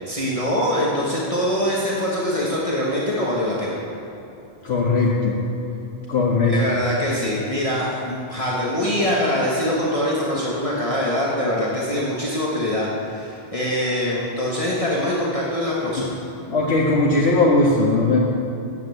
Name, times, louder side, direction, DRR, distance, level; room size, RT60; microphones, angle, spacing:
voice 1, 0.0-3.8 6.5-16.2, left 1 dB, 35° left, -6 dB, 1.4 m, -23 dB
voice 2, 4.6-5.4 6.1-6.6 16.5-18.2, left 3 dB, 90° left, -4 dB, 1.4 m, -18 dB
9.5 x 7.9 x 7.8 m, 2.9 s
omnidirectional pair, 1.0 m